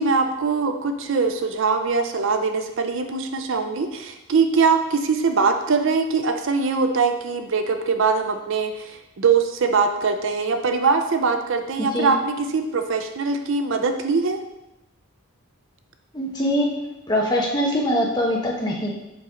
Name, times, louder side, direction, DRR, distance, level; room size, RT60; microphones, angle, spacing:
voice 1, 0.0-14.4, right 4 dB, 55° right, 7 dB, 0.5 m, -22 dB
voice 2, 16.1-16.7 17.1-18.9, equal, 20° left, -1 dB, 1.1 m, -22 dB
7.7 x 5.6 x 3.8 m, 0.94 s
head